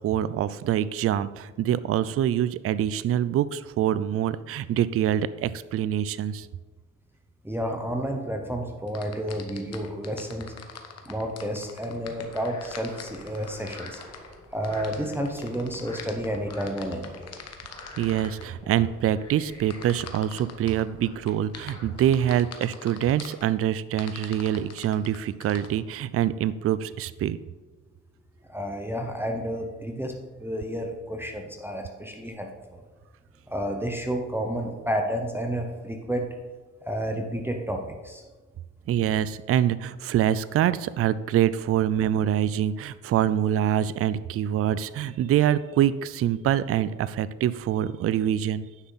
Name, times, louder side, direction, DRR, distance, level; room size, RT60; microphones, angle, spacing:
voice 1, 0.0-6.5 18.0-27.4 38.9-48.7, right 10 dB, 50° right, 16 dB, 0.4 m, -25 dB
voice 2, 7.4-10.5 11.0-14.0 14.5-17.3 28.5-32.8 33.5-36.3 36.8-38.2, equal, 5° right, 3 dB, 0.9 m, -31 dB
sound 1, 8.9-18.4 19.7-20.8 21.2-23.4 24.0-25.7, left 7 dB, 55° left, 1.1 m, -43 dB
Frog, 11.9-22.2, left 2 dB, 15° left, 2.9 m, -48 dB
9.8 x 5.8 x 4.1 m, 1.3 s
cardioid pair, 90°, 30 cm